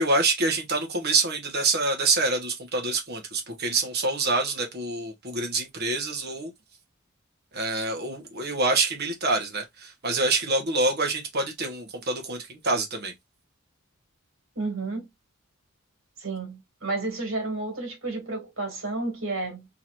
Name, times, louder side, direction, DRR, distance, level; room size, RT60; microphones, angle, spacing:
voice 1, 0.0-6.5 7.5-13.1, right 3 dB, 50° right, 1.3 m, -26 dB
voice 2, 14.6-15.1 16.2-19.7, right 3 dB, 65° right, 2.3 m, -31 dB
3.8 x 3.1 x 2.6 m
head